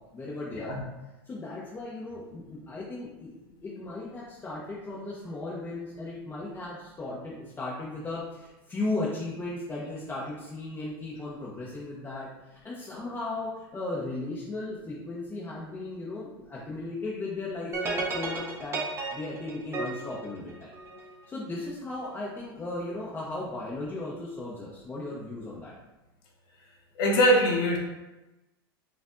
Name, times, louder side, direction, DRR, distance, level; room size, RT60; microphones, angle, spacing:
voice 1, 0.1-0.9 1.2-3.3 3.6-18.8 19.1-20.7 21.3-25.7, left 2 dB, 15° left, -6 dB, 0.7 m, -36 dB
sound 1, 17.7-21.1, right 3 dB, 20° right, 0.8 m, -33 dB
voice 2, 27.0-27.8, equal, 65° left, -1 dB, 1.0 m, -22 dB
4.4 x 2.5 x 2.5 m, 1.1 s
hypercardioid pair, 110°, 13 cm